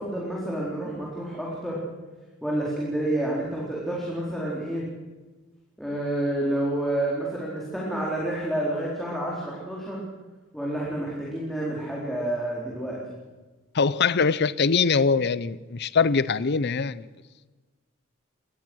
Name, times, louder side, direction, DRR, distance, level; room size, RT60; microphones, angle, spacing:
voice 1, 0.0-1.8 2.4-4.9 5.8-10.0 10.5-13.2, right 1 dB, ahead, -5 dB, 4.1 m, -29 dB
voice 2, 13.7-17.1, left 5 dB, 55° left, 18 dB, 0.7 m, -23 dB
22.5 x 19.5 x 6.3 m, 1.3 s
head